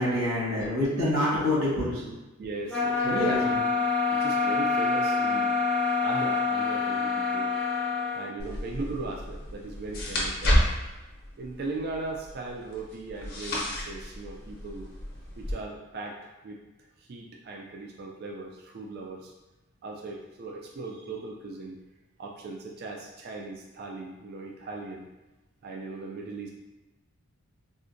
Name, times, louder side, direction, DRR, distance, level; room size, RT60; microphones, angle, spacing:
voice 1, 0.0-2.1 3.0-3.4 8.4-8.6, left 1 dB, 70° right, -8 dB, 1.4 m, -27 dB
voice 2, 2.4-3.5 4.1-5.5 6.0-7.5 8.1-10.6 11.4-14.9 15.4-16.6 17.0-19.3 19.8-21.8 22.2-25.1 25.6-26.5, right 3 dB, 45° right, -1 dB, 0.3 m, -37 dB
sound 1, 2.7-8.2, left 4 dB, 5° left, 0.5 m, -26 dB
sound 2, 8.4-15.5, equal, 45° left, 0.7 m, -31 dB
3.6 x 2.1 x 2.5 m, 1.1 s
head